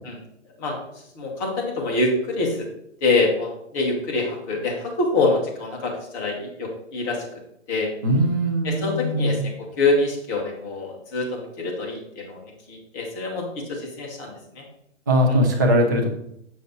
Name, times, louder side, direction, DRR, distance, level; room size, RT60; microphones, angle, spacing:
voice 1, 1.2-2.7 3.0-7.2 7.7-7.9 8.6-12.4 12.7-14.6, left 3 dB, 15° left, -1 dB, 0.9 m, -25 dB
voice 2, 8.0-9.4 15.1-16.1, equal, 15° right, 1 dB, 0.4 m, -20 dB
8.2 x 5.2 x 3.9 m, 0.76 s
hypercardioid pair, 160°, 36 cm